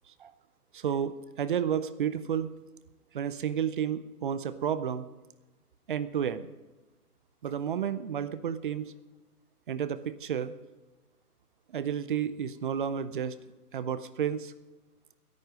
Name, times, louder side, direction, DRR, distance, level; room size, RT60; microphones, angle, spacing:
voice 1, 0.7-2.5 3.1-5.1 5.9-6.5 7.4-8.9 9.7-10.5 11.7-13.4 13.7-14.5, right 8 dB, 35° right, 13 dB, 0.6 m, -31 dB
16.5 x 11.0 x 5.1 m, 1.2 s
figure-of-eight pair, 135°, 46 cm